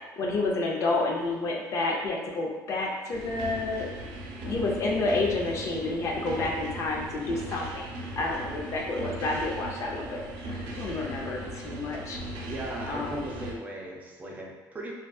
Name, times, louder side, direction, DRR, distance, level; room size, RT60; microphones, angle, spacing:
voice 1, 0.2-3.9 4.4-7.9 8.2-12.2 12.9-13.3, left 2 dB, 45° left, -1 dB, 0.4 m, -30 dB
sound 1, 3.1-13.5, right 1 dB, 85° right, 0.4 m, -38 dB
voice 2, 12.4-14.9, right 1 dB, 20° right, -2 dB, 0.4 m, -38 dB
2.4 x 2.3 x 2.2 m, 1.3 s
cardioid pair, 135°, 7 cm